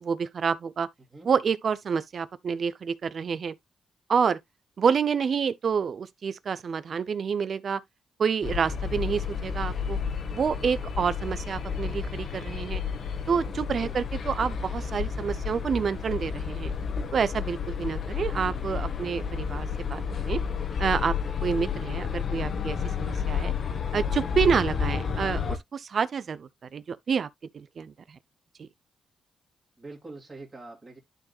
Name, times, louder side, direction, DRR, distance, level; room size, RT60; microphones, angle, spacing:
voice 1, 0.0-0.9 1.2-3.5 4.1-4.4 4.8-7.8 8.2-10.0 10.3-12.8 13.3-16.7 17.1-20.4 20.8-21.1 21.4-23.5 23.9-27.3 27.5-28.2 28.6-28.7, right 6 dB, 55° right, 0.7 m, -28 dB
sound 1, 8.4-25.6, left 6 dB, 60° left, 1.4 m, -31 dB
voice 2, 29.8-31.0, right 2 dB, 25° right, 2.8 m, -44 dB
12.0 x 4.0 x 2.5 m
cardioid pair, 80°, 0 cm